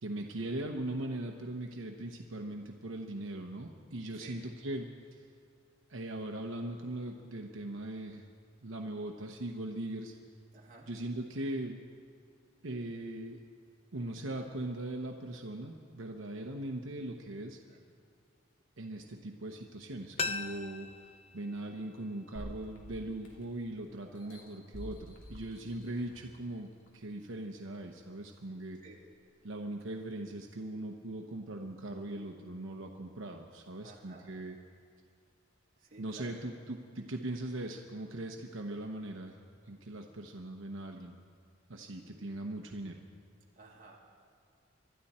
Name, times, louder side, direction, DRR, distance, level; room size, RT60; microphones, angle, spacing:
voice 1, 0.0-5.2 5.9-8.3 8.6-10.1 10.9-11.8 12.6-13.4 13.9-17.6 18.8-20.9 21.3-28.8 29.4-34.6 36.0-39.4 39.7-41.2 41.7-43.0, right 1 dB, 80° right, 3 dB, 1.0 m, -40 dB
voice 2, 10.5-10.9 17.7-17.8 24.0-24.4 28.8-29.0 33.8-34.3 35.8-36.4 42.0-42.2 43.6-44.0, right 3 dB, 40° right, -3 dB, 2.7 m, -54 dB
sound 1, 20.2-23.0 23.3-23.4, left 5 dB, 30° left, 0.5 m, -41 dB
sound 2, 22.4-23.7 24.2-26.3 26.9-27.0, equal, 70° left, 2.9 m, -48 dB
25.5 x 12.5 x 4.3 m, 2.3 s
head